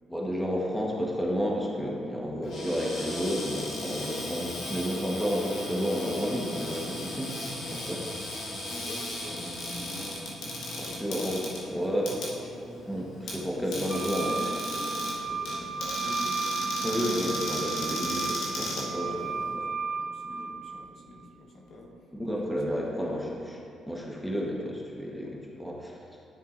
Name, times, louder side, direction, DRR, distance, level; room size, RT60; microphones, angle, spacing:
voice 1, 0.1-7.3 7.7-8.0 10.7-12.2 12.9-14.3 16.8-19.4 22.1-23.6 23.9-26.0, equal, 5° left, -2 dB, 1.3 m, -31 dB
Cupboard open or close, 2.4-19.5, left 1 dB, 85° left, 1.9 m, -36 dB
voice 2, 8.7-12.8 13.5-13.9 14.2-16.4 18.9-23.4, left 1 dB, 60° left, -2 dB, 1.4 m, -46 dB
Wind instrument woodwind instrument, 13.9-20.6, right 5 dB, 45° right, 1.1 m, -33 dB
12.0 x 6.5 x 2.6 m, 2.6 s
cardioid pair, 90°, 0 cm